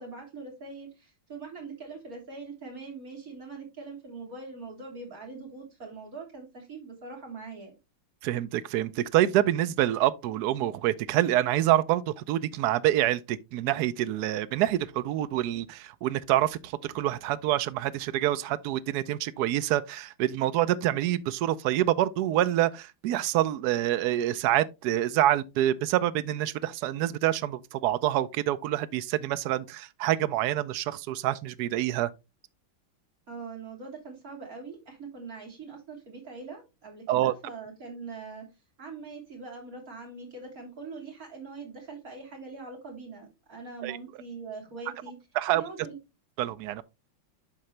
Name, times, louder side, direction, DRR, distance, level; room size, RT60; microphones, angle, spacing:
voice 1, 0.0-7.7 33.3-38.5 38.8-45.2 45.5-46.0, right 4 dB, 45° right, 3.3 m, -42 dB
voice 2, 8.2-32.1 37.1-37.3 43.8-44.0 45.4-45.6 46.4-46.8, right 13 dB, 70° right, 0.9 m, -26 dB
11.5 x 3.8 x 3.2 m
omnidirectional pair, 2.2 m